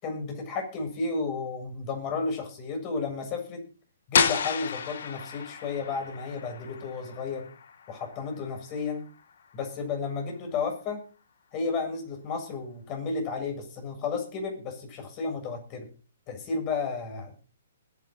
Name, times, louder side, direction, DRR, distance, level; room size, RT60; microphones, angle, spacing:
voice 1, 0.0-3.6 4.1-7.5 7.9-9.0 9.5-11.0 11.5-15.9 16.3-17.4, left 4 dB, 30° left, 4 dB, 7.4 m, -32 dB
sound 1, 4.1-9.8, left 6 dB, 60° left, 1.8 m, -32 dB
21.0 x 10.5 x 4.6 m, 0.36 s
figure-of-eight pair, 125°, 0 cm